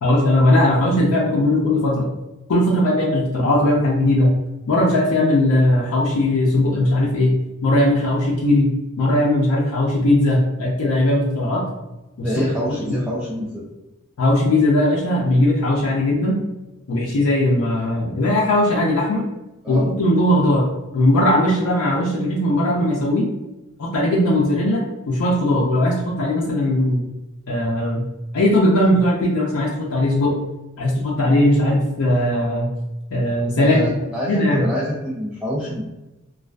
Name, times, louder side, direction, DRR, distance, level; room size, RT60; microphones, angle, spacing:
voice 1, 0.0-2.1 2.5-4.3 4.7-7.3 7.6-8.7 9.0-11.6 12.2-12.3 12.7-12.8 14.2-16.4 16.9-19.2 19.7-20.6 20.9-23.3 23.8-27.0 27.5-28.0 28.3-30.3 30.8-32.7 33.1-33.8 34.3-34.6, left 1 dB, 90° left, -4 dB, 0.5 m, -18 dB
voice 2, 12.2-13.6 19.6-19.9 33.6-33.8 34.1-35.8, equal, 5° right, -7 dB, 0.3 m, -26 dB
2.4 x 2.2 x 2.2 m, 1.0 s
head